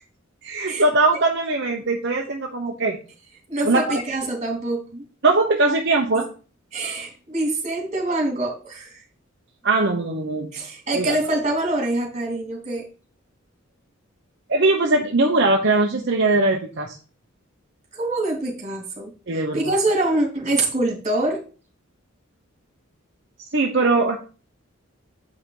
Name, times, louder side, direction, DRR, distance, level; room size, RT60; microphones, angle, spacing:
voice 1, 0.4-3.0 3.6-4.0 5.2-6.3 9.6-10.5 10.9-11.2 14.5-17.0 19.3-19.7 23.5-24.2, right 2 dB, 60° right, 1 dB, 1.1 m, -20 dB
voice 2, 3.5-5.0 6.7-9.0 10.5-12.9 17.9-19.1 19.5-21.4, right 2 dB, 35° right, 1 dB, 3.2 m, -25 dB
8.1 x 5.8 x 4.9 m, 0.35 s
head